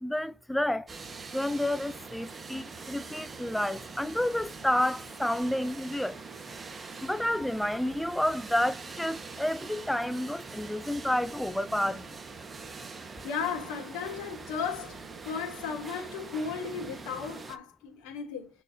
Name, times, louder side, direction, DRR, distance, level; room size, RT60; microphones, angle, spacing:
voice 1, 0.0-0.9 1.3-6.2 7.0-12.2, left 1 dB, 5° left, 0.3 m, -30 dB
sound 1, 0.9-17.6, right 4 dB, 20° right, 1.0 m, -43 dB
voice 2, 13.2-18.5, left 6 dB, 70° left, 3.3 m, -35 dB
6.4 x 4.2 x 4.1 m
supercardioid pair, 100°, 0 cm